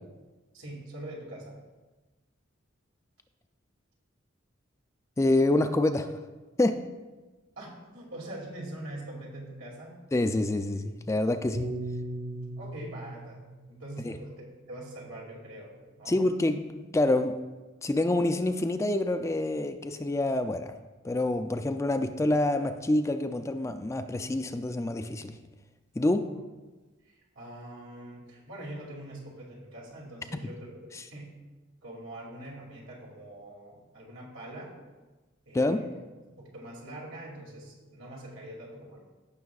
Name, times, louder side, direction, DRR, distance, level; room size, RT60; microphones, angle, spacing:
voice 1, 0.5-1.6 7.6-9.9 11.6-11.7 12.6-13.4 13.7-16.2 26.3-26.4 27.1-31.3 31.8-34.8 35.4-35.9 36.4-39.0, right 1 dB, 80° right, -3 dB, 2.5 m, -43 dB
voice 2, 5.2-6.2 6.6-6.8 10.1-11.6 14.0-14.2 16.1-17.3 17.8-20.8 21.0-25.4 26.0-26.3 30.9-31.0 35.5-35.8, left 2 dB, 15° left, 7 dB, 0.3 m, -27 dB
Piano, 11.6-16.0, right 1 dB, 60° right, 1.6 m, -39 dB
15.0 x 6.2 x 2.3 m, 1.2 s
head